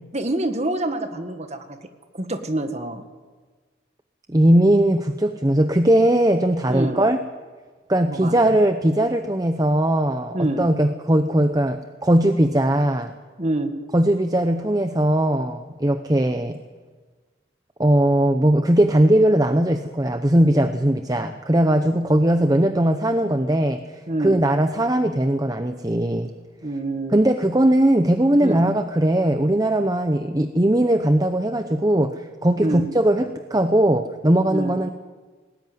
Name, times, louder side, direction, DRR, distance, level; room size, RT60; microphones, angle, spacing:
voice 1, 0.1-1.8 2.1-3.0 6.7-7.0 8.1-8.4 10.3-10.6 13.4-13.8 24.1-24.4 26.6-27.1 28.4-28.6 32.6-32.8 34.5-34.8, right 1 dB, 35° right, 7 dB, 1.7 m, -26 dB
voice 2, 4.3-7.2 7.9-13.1 13.9-16.6 17.8-26.3 27.1-34.9, right 1 dB, 20° right, 8 dB, 0.7 m, -19 dB
19.5 x 18.5 x 9.5 m, 1.4 s
head